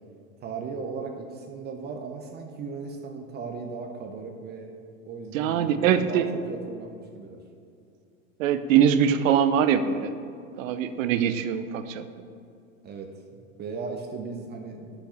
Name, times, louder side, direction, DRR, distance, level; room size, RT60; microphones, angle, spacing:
voice 1, 0.4-4.7 5.1-7.4 12.8-15.0, right 4 dB, 25° right, 3 dB, 0.6 m, -37 dB
voice 2, 5.3-6.3 8.4-10.1 10.6-12.0, right 8 dB, 75° right, 11 dB, 0.7 m, -22 dB
6.5 x 5.7 x 5.6 m, 2.4 s
supercardioid pair, 125°, 40 cm